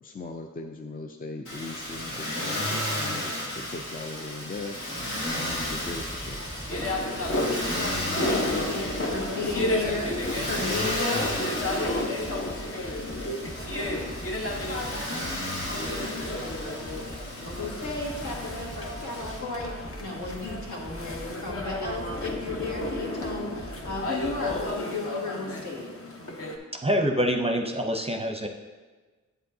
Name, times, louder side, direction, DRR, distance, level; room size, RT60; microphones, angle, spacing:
voice 1, 0.0-4.8 5.3-6.4 6.8-7.1, left 3 dB, 30° left, 4 dB, 0.4 m, -39 dB
Motor vehicle (road), 1.4-19.4, left 1 dB, 85° left, 2.1 m, -34 dB
sound 1, 5.3-24.7, right 1 dB, 5° left, 0.9 m, -42 dB
sound 2, 6.7-26.6, left 2 dB, 45° left, 0.9 m, -32 dB
voice 2, 8.2-11.4 17.6-25.9, left 2 dB, 70° left, -4 dB, 1.8 m, -34 dB
voice 3, 26.7-28.5, equal, 20° right, 3 dB, 0.6 m, -26 dB
8.2 x 7.8 x 2.7 m, 1.3 s
wide cardioid pair, 75°, 31 cm